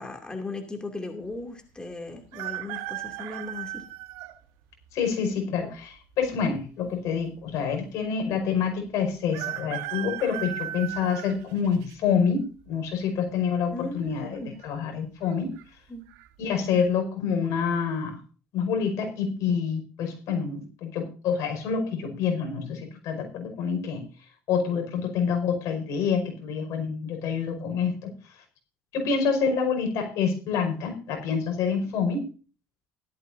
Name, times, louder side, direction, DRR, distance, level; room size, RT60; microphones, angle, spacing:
voice 1, 0.0-3.8 13.7-14.6 15.9-16.0, left 2 dB, 15° left, 3 dB, 2.6 m, -37 dB
sound 1, 2.3-4.3 5.0-5.1 6.2-6.8 7.1-7.2 7.4-7.5 9.3-11.9 12.5-12.9 14.0-14.4 14.6-14.7 15.2-15.6 16.1-16.3, right 15 dB, 85° right, 1.2 m, -36 dB
voice 2, 4.9-15.5 16.4-18.2 18.5-24.1 24.5-28.1 28.9-32.3, left 6 dB, 65° left, 4 dB, 5.3 m, -27 dB
16.0 x 13.0 x 2.7 m, 0.36 s
cardioid pair, 120°, 6 cm